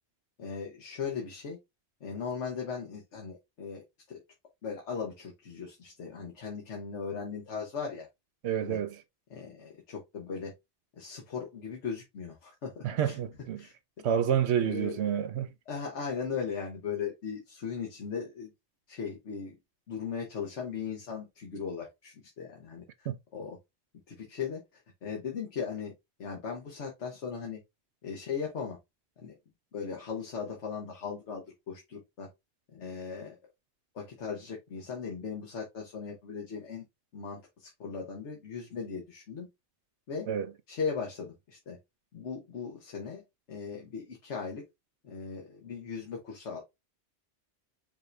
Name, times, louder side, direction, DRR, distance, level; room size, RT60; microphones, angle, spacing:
voice 1, 0.4-1.6 2.0-3.8 4.1-4.2 4.6-8.1 8.6-8.8 9.3-10.5 10.9-13.2 13.6-14.1 14.6-15.0 15.7-18.5 18.9-19.6 19.9-23.1 23.3-23.6 24.1-25.9 26.2-27.6 28.0-28.8 29.2-29.4 29.7-32.3 32.7-33.4 33.9-36.8 37.1-39.5 40.1-40.3 40.7-41.8 42.1-43.2 43.5-44.6 45.0-46.6, left 6 dB, 80° left, 1.4 m, -38 dB
voice 2, 8.4-9.0 12.8-13.6 14.0-15.5 23.1-23.2 40.3-40.5, right 9 dB, 70° right, 0.8 m, -29 dB
5.3 x 2.6 x 3.2 m
omnidirectional pair, 1.2 m